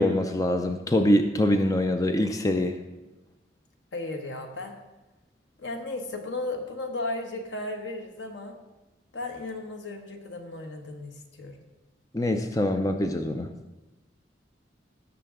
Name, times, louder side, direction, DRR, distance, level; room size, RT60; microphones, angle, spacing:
voice 1, 0.0-2.8 12.1-13.5, left 1 dB, 20° left, 6 dB, 0.5 m, -24 dB
voice 2, 3.9-4.7 5.6-8.5 9.1-11.6, left 2 dB, 75° left, 3 dB, 1.3 m, -35 dB
17.0 x 6.9 x 3.7 m, 1.1 s
head